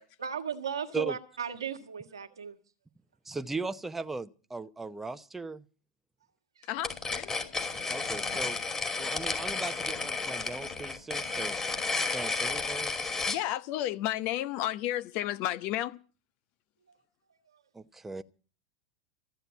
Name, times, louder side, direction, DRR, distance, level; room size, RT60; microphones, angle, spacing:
voice 1, 0.0-2.6 6.5-6.7 12.0-12.1 16.9-17.0 17.5-17.6, right 7 dB, 85° right, 1.6 m, -37 dB
voice 2, 3.3-5.6 7.9-8.6 8.9-11.6 12.1-13.2 17.7-18.2, right 3 dB, 10° right, 0.8 m, -38 dB
voice 3, 6.7-7.3 13.3-16.0, left 13 dB, 50° left, 0.8 m, -32 dB
sound 1, 6.8-13.4, left 4 dB, 20° left, 2.7 m, -32 dB
14.5 x 9.0 x 8.3 m
hypercardioid pair, 90°, 2 cm